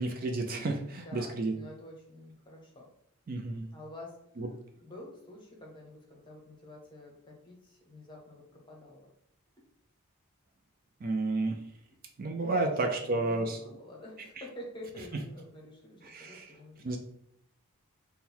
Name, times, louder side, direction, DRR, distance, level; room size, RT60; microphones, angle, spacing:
voice 1, 0.0-1.5 3.3-3.7 4.4-4.5 11.0-11.6 12.2-13.8 16.0-16.5 16.8-17.0, right 2 dB, 40° right, 3 dB, 0.4 m, -31 dB
voice 2, 0.9-2.9 3.7-4.2 4.8-9.1 12.5-17.0, left 1 dB, 20° left, -2 dB, 0.9 m, -48 dB
3.7 x 2.2 x 4.3 m, 0.72 s
head